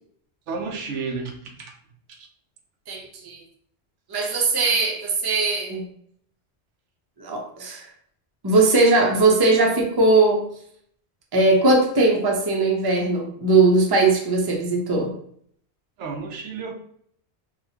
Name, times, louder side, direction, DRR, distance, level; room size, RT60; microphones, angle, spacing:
voice 1, 0.5-1.7 2.1-2.3 16.0-16.7, right 4 dB, 90° right, 3 dB, 1.0 m, -32 dB
voice 2, 2.9-3.4 4.1-5.9 7.2-7.9 8.4-10.5 11.3-15.2, right 3 dB, 25° right, 0 dB, 0.5 m, -19 dB
3.9 x 2.2 x 2.7 m, 0.64 s
omnidirectional pair, 1.2 m